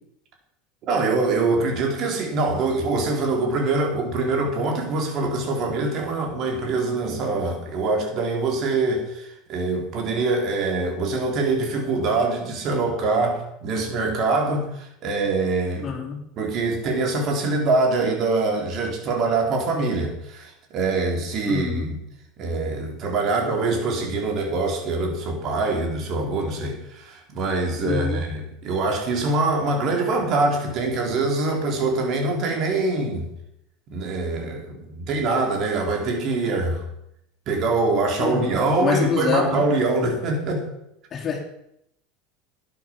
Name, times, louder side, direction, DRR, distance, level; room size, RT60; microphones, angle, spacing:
voice 1, 0.9-16.0 16.4-22.0 22.4-33.3 33.9-36.8 37.5-40.7, right 3 dB, 50° right, 2 dB, 4.3 m, -24 dB
voice 2, 15.8-16.2 21.4-21.9 27.8-28.2 38.2-39.6 41.1-41.4, left 6 dB, 35° left, 0 dB, 3.4 m, -26 dB
12.0 x 10.0 x 6.2 m, 0.78 s
hypercardioid pair, 90°, 0 cm